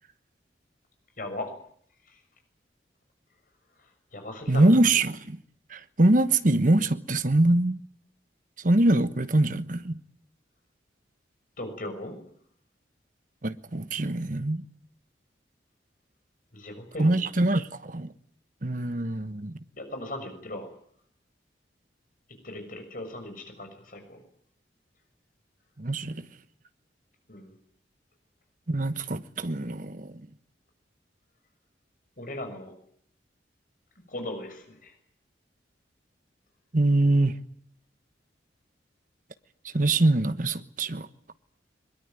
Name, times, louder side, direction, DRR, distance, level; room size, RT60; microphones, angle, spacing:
voice 1, 1.2-1.5 2.1-2.2 4.1-4.7 11.6-12.2 16.5-17.1 19.8-20.7 22.4-24.2 27.3-27.5 32.2-32.7 34.1-34.9, left 1 dB, 50° left, 6.5 m, -38 dB
voice 2, 4.5-5.4 5.7-7.8 8.6-10.0 13.4-14.6 17.0-18.1 18.6-19.5 25.8-26.3 28.7-30.2 36.7-37.4 39.7-41.1, right 2 dB, 45° right, 1.2 m, -23 dB
22.0 x 22.0 x 9.3 m
head